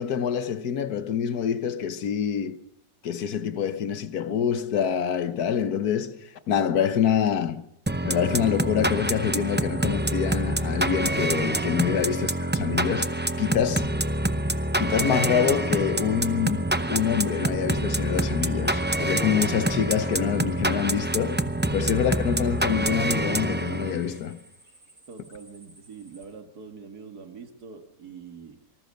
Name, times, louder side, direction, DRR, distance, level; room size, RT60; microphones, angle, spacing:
voice 1, 0.0-2.6 3.0-7.6 8.0-13.9 14.8-21.4 21.7-24.4, left 8 dB, 80° left, 1.6 m, -26 dB
sound 1, 7.9-24.2, right 1 dB, 15° right, 0.4 m, -26 dB
sound 2, 8.2-26.2, right 2 dB, 45° right, 4.6 m, -54 dB
voice 2, 25.1-28.6, right 5 dB, 80° right, 2.7 m, -44 dB
25.5 x 19.5 x 6.6 m
omnidirectional pair, 1.6 m